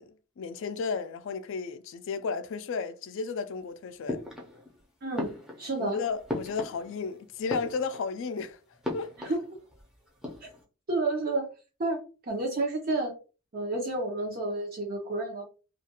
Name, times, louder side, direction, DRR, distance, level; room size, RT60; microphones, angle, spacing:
voice 1, 0.0-4.2 5.8-8.6 8.9-9.3, left 5 dB, 65° left, 0.4 m, -34 dB
sound 1, 4.1-4.8 5.1-7.1 7.4-8.2 8.8-9.8 10.1-10.6, left 1 dB, 5° right, 0.5 m, -37 dB
voice 2, 5.0-6.0 9.2-9.4 10.4-10.5 10.9-11.5 11.8-13.1 13.5-15.4, right 2 dB, 45° right, 0.6 m, -30 dB
2.4 x 2.3 x 2.8 m
head